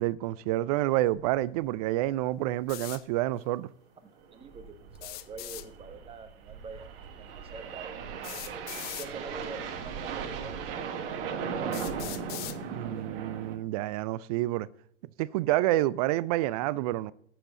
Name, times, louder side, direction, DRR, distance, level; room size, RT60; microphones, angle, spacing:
voice 1, 0.0-3.7 12.7-14.7 15.2-17.1, right 16 dB, 35° right, 0.4 m, -28 dB
sound 1, 1.2-1.3 1.6-1.7 2.0-2.1 2.7-2.9 4.2-13.6, right 6 dB, 50° right, 1.5 m, -38 dB
sound 2, 2.7-3.0 4.9-5.7 7.1-7.2 8.2-9.1 10.1-10.2 10.9-11.0 11.7-12.6, left 15 dB, 30° left, 0.6 m, -40 dB
voice 2, 4.0-8.6 8.9-12.6, right 4 dB, 15° right, 1.1 m, -46 dB
7.6 x 6.6 x 7.2 m
hypercardioid pair, 105°, 35 cm